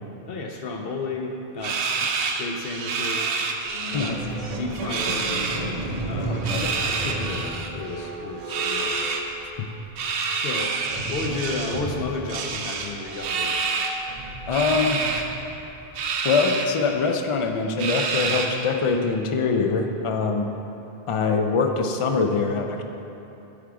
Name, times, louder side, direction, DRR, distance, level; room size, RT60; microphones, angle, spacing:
voice 1, 0.3-3.3 3.9-4.2 4.6-5.7 6.0-6.4 6.8-8.9 10.4-10.8 11.0-13.6, left 3 dB, 70° left, 2 dB, 0.8 m, -33 dB
sound 1, 1.6-4.1 4.4-5.6 6.3-7.7 8.5-9.2 10.0-11.8 12.3-14.0 14.5-15.2 16.0-16.7 17.1-17.2 17.8-18.7, right 5 dB, 70° right, 0.8 m, -28 dB
Squeak, 3.6-10.0 10.9-16.1, right 1 dB, 40° right, 0.8 m, -34 dB
voice 2, 6.2-6.7 14.5-15.0 16.2-20.5 21.1-22.8, left 4 dB, 45° left, 4 dB, 0.4 m, -23 dB
9.9 x 3.6 x 4.8 m, 2.9 s
omnidirectional pair, 1.0 m